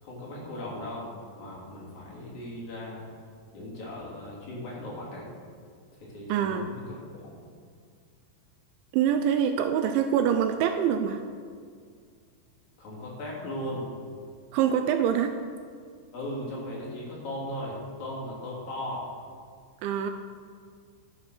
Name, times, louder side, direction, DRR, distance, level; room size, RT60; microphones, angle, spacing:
voice 1, 0.0-1.1 1.3-3.0 3.5-5.3 6.0-6.8 7.1-7.5 12.8-13.9 16.1-19.0, left 1 dB, 40° left, -5 dB, 3.9 m, -37 dB
voice 2, 6.3-6.7 8.9-11.2 14.5-15.4 19.8-20.1, right 8 dB, 80° right, 7 dB, 2.8 m, -25 dB
12.5 x 7.8 x 6.6 m, 2.1 s
omnidirectional pair, 5.8 m